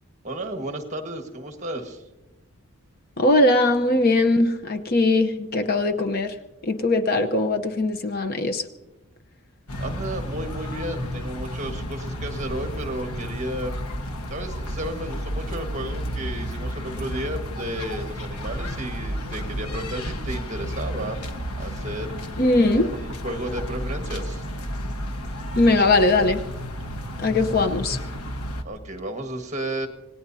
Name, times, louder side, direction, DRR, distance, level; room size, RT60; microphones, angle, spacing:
voice 1, 0.2-2.0 9.8-13.8 14.3-21.3 21.6-22.1 22.7-24.4 28.6-29.9, right 1 dB, 30° right, 5 dB, 1.6 m, -33 dB
voice 2, 3.2-6.3 6.6-8.6 22.4-22.9 25.6-26.4 27.2-28.0, left 2 dB, 40° left, 6 dB, 0.8 m, -20 dB
sound 1, 9.7-28.6, equal, 85° left, 1.4 m, -32 dB
27.0 x 18.5 x 2.8 m, 1.0 s
head